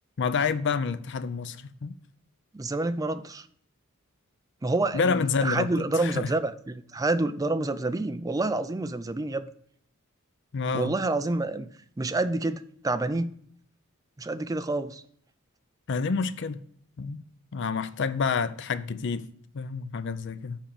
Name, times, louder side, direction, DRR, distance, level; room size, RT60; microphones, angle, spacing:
voice 1, 0.2-1.9 4.9-6.3 10.5-10.9 15.9-16.6 17.0-17.2 17.5-19.3 19.5-20.6, left 5 dB, 55° left, 0.5 m, -28 dB
voice 2, 2.5-3.5 4.6-9.5 10.7-11.7 12.0-13.4 14.2-15.0, right 2 dB, 15° right, 0.4 m, -28 dB
7.4 x 4.4 x 6.8 m
head